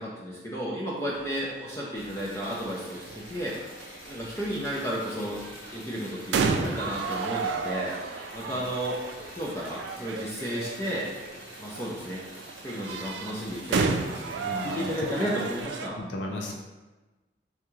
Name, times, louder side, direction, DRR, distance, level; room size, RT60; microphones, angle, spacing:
voice 1, 0.0-3.6 4.1-5.4 5.7-7.9 8.3-9.0 9.3-11.1 11.6-12.2 12.6-16.0, equal, 15° left, -5 dB, 0.5 m, -33 dB
sound 1, 1.2-15.9, right 4 dB, 90° right, 0.3 m, -34 dB
Liquid, 2.0-15.6, left 1 dB, 50° left, 1.0 m, -47 dB
voice 2, 14.4-15.1 16.0-16.5, left 2 dB, 85° left, 0 dB, 0.5 m, -35 dB
3.5 x 3.5 x 3.0 m, 1.2 s
head